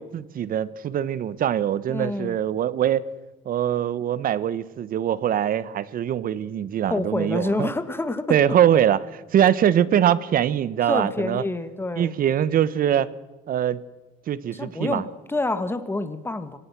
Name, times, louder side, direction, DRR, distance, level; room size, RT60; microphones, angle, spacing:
voice 1, 0.0-3.0 3.4-7.7 8.3-11.4 12.0-13.1 13.5-13.8 14.3-15.0, right 10 dB, 55° right, 18 dB, 1.1 m, -23 dB
voice 2, 1.9-2.4 6.9-8.4 10.9-12.1 14.5-16.6, left 2 dB, 15° left, 11 dB, 2.0 m, -27 dB
25.5 x 18.0 x 6.1 m, 1.2 s
cardioid pair, 95°, 18 cm